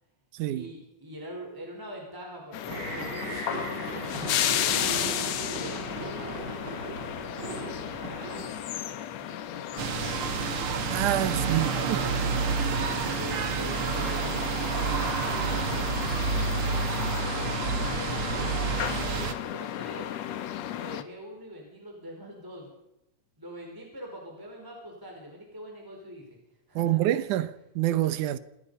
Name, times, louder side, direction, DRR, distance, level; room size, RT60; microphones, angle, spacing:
voice 1, 0.4-8.5 8.8-10.6 11.1-12.2 12.8-20.1 20.6-22.8 23.4-26.4 26.7-27.3, equal, 5° right, 4.4 m, -44 dB
sound 1, 2.5-21.0, left 11 dB, 65° left, 2.0 m, -34 dB
sound 2, 2.7-8.7, right 2 dB, 35° right, 8.7 m, -37 dB
sound 3, 9.8-19.3, right 6 dB, 55° right, 1.8 m, -29 dB
voice 2, 10.9-12.0 26.8-28.4, right 14 dB, 75° right, 2.4 m, -27 dB
27.5 x 19.0 x 5.6 m
omnidirectional pair, 3.7 m